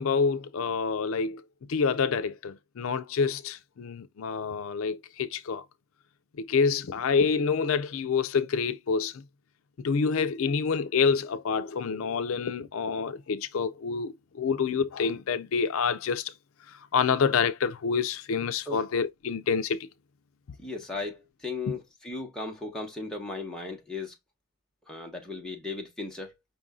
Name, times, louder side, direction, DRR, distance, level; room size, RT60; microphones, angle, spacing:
voice 1, 0.0-1.4 1.7-5.6 6.4-9.2 9.8-16.3 16.9-19.9, left 5 dB, 70° left, 0.4 m, -27 dB
voice 2, 20.6-24.1 24.9-26.3, left 3 dB, 5° left, 1.2 m, -36 dB
5.4 x 2.6 x 3.6 m
head